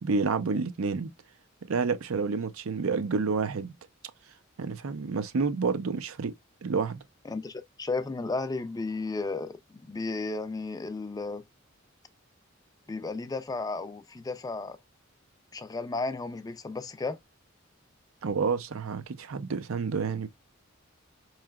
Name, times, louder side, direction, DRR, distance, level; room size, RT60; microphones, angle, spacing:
voice 1, 0.0-1.1 1.7-3.7 4.6-6.3 6.6-7.0 18.2-20.3, right 4 dB, 85° right, 0.5 m, -29 dB
voice 2, 7.2-11.4 12.9-14.8 15.5-17.2, left 3 dB, 20° left, 0.3 m, -34 dB
4.7 x 3.1 x 2.3 m
head